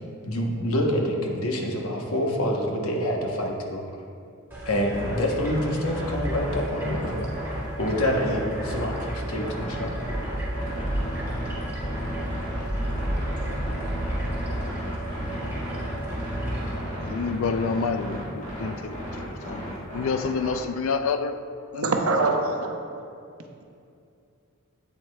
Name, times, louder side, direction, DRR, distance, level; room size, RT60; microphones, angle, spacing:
voice 1, 0.2-3.8 4.7-7.3 7.8-10.0, left 1 dB, 85° left, 0.9 m, -27 dB
sound 1, 4.5-16.8, right 1 dB, 10° right, 1.5 m, -32 dB
sound 2, 4.9-20.6, equal, 35° left, 1.7 m, -35 dB
voice 2, 17.0-21.4 21.7-21.9, left 5 dB, 70° left, 0.4 m, -28 dB
voice 3, 21.7-22.8, right 3 dB, 85° right, 0.7 m, -23 dB
8.1 x 7.6 x 2.2 m
head